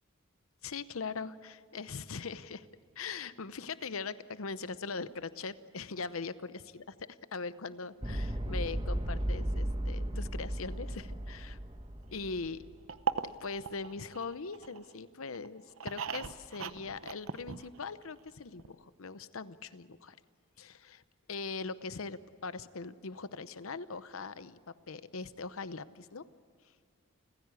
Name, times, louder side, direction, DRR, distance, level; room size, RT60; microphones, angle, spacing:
voice 1, 0.6-2.7 3.0-11.5 12.1-12.6 13.4-20.2 20.6-21.0 21.3-24.6 24.9-26.3, left 4 dB, 80° left, 14 dB, 0.8 m, -41 dB
sound 1, 8.0-13.2, right 1 dB, 25° right, 1.8 m, -35 dB
sound 2, 12.9-14.9 15.3-18.0 18.3-18.4 18.6-18.7, right 6 dB, 75° right, 0.8 m, -38 dB
30.0 x 15.5 x 8.3 m, 2.3 s
head